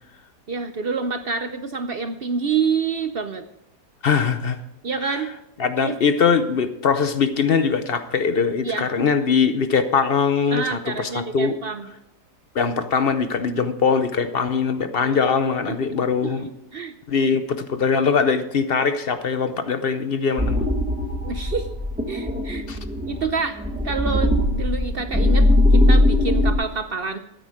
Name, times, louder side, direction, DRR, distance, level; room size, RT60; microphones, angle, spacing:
voice 1, 0.5-3.4 4.8-5.3 5.8-6.0 8.6-8.9 10.5-11.9 15.0-15.3 15.7-16.0 16.2-16.9 21.2-21.8 22.1-22.7 23.1-23.6 23.8-27.2, right 5 dB, 55° right, 9 dB, 0.6 m, -27 dB
voice 2, 4.0-4.6 5.0-5.2 5.6-11.5 12.5-16.5 17.1-20.7 22.7-22.8, left 5 dB, 55° left, 10 dB, 0.6 m, -21 dB
sound 1, 20.4-26.5, left 1 dB, 5° right, 1.2 m, -20 dB
13.0 x 9.1 x 5.0 m, 0.83 s
omnidirectional pair, 1.8 m